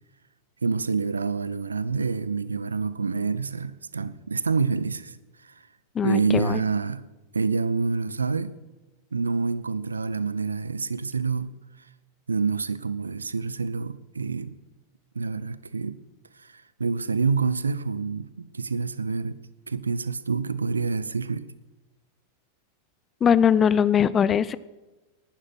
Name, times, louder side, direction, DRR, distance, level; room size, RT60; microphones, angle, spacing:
voice 1, 0.6-5.1 6.0-7.0 7.3-8.6 9.1-11.5 12.3-14.6 15.1-16.0 16.8-19.4 19.7-21.5, right 4 dB, 75° right, 0.7 m, -27 dB
voice 2, 5.9-6.6 23.2-24.6, left 8 dB, 25° left, 0.7 m, -21 dB
19.0 x 11.5 x 6.0 m
figure-of-eight pair, 90°, 0 cm